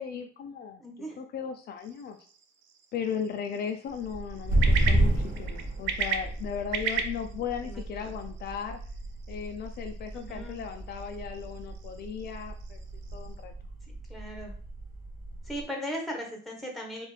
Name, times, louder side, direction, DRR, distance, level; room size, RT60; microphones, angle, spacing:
voice 1, 0.0-2.2 2.9-8.8 9.3-12.8 13.1-13.5, left 7 dB, 55° left, 6 dB, 0.5 m, -36 dB
voice 2, 0.8-1.2 7.6-8.1 10.1-10.6 13.9-14.5 15.4-17.1, equal, ahead, 1 dB, 1.2 m, -38 dB
sound 1, 1.8-13.4, right 6 dB, 85° right, 0.6 m, -38 dB
sound 2, 3.9-15.6, right 1 dB, 50° right, 1.4 m, -32 dB
4.5 x 2.5 x 3.3 m, 0.42 s
cardioid pair, 110°, 19 cm